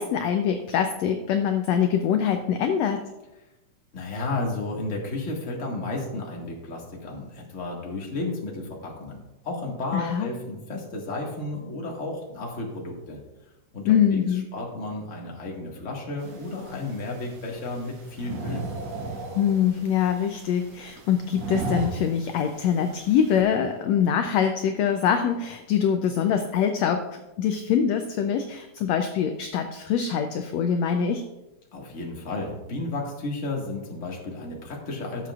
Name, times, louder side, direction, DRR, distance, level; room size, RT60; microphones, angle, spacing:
voice 1, 0.0-3.0 9.9-10.3 13.8-14.4 19.3-31.2, left 8 dB, 80° left, 6 dB, 1.6 m, -24 dB
voice 2, 3.9-13.2 13.7-14.2 14.5-18.6 31.7-35.3, left 2 dB, 30° left, -2 dB, 1.5 m, -33 dB
sound 1, 16.2-23.4, right 3 dB, 60° right, 2.5 m, -37 dB
16.5 x 7.4 x 2.4 m, 1.0 s
omnidirectional pair, 3.6 m